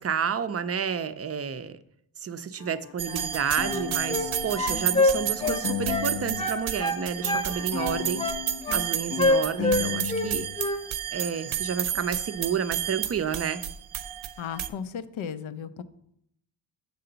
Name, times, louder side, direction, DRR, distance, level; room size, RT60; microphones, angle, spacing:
voice 1, 0.0-1.8 2.2-8.3 8.7-10.5 11.1-13.6, right 7 dB, 35° right, 13 dB, 0.4 m, -30 dB
sound 1, 2.6-6.5 6.7-10.6, left 10 dB, 35° left, 0.4 m, -35 dB
sound 2, 3.0-14.7, right 10 dB, 85° right, 0.6 m, -32 dB
sound 3, 3.6-4.3 4.6-6.1 6.4-7.5 7.8-8.8 9.2-10.3 10.6-10.8, left 2 dB, 10° left, 0.8 m, -26 dB
voice 2, 14.4-15.8, left 7 dB, 90° left, 13 dB, 0.7 m, -35 dB
6.8 x 6.7 x 3.9 m, 0.74 s
wide cardioid pair, 115°, 46 cm